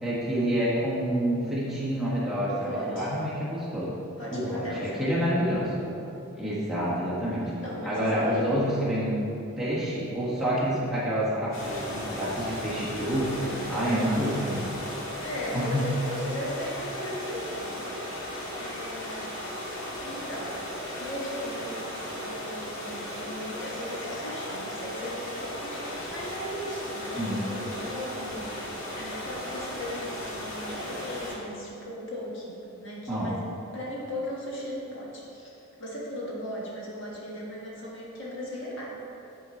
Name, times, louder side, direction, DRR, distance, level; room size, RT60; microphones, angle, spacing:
voice 1, 0.0-3.9 4.3-5.7 6.4-7.5 7.8-9.2 9.6-13.3 13.7-14.7 15.5-15.8 27.1-27.4 33.1-33.3, equal, ahead, -10 dB, 1.4 m, -28 dB
voice 2, 2.5-3.1 4.2-5.0 7.4-8.5 13.4-14.4 15.2-18.1 18.5-19.3 20.0-20.5 21.0-32.5 32.8-33.4 33.7-38.8, equal, 60° left, -5 dB, 1.6 m, -37 dB
sound 1, 11.5-31.3, left 1 dB, 75° left, 1.8 m, -36 dB
9.0 x 4.5 x 4.3 m, 2.8 s
head